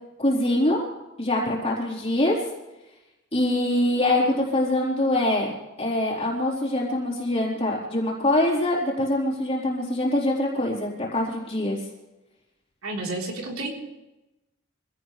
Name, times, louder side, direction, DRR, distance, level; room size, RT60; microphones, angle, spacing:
voice 1, 0.2-0.8 1.2-2.4 3.3-5.5 5.8-11.8, left 1 dB, 30° left, -4 dB, 4.1 m, -24 dB
voice 2, 12.8-13.7, right 2 dB, 90° right, -1 dB, 4.0 m, -31 dB
25.0 x 17.0 x 3.4 m, 1.0 s
head